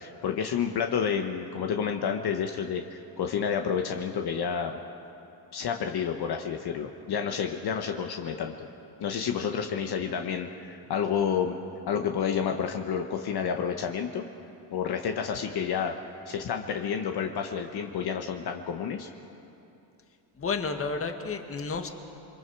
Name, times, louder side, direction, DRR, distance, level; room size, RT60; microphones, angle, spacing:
voice 1, 0.0-4.8 5.5-8.5 9.0-11.5 11.9-14.3 14.7-15.9 16.3-19.1, left 7 dB, 55° left, 4 dB, 1.3 m, -30 dB
voice 2, 20.4-21.9, left 4 dB, 30° left, 5 dB, 1.7 m, -31 dB
28.5 x 23.0 x 4.8 m, 2.8 s
cardioid pair, 115°, 46 cm